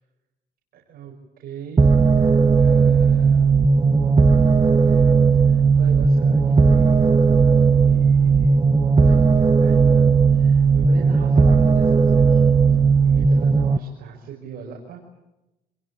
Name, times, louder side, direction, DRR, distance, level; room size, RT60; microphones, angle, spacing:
voice 1, 0.7-3.6 4.4-8.6 9.0-15.0, right 7 dB, 60° right, -1 dB, 6.1 m, -39 dB
sound 1, 1.8-13.8, right 5 dB, 20° right, 1.1 m, -16 dB
28.0 x 22.5 x 8.8 m, 0.97 s
cardioid pair, 110°, 17 cm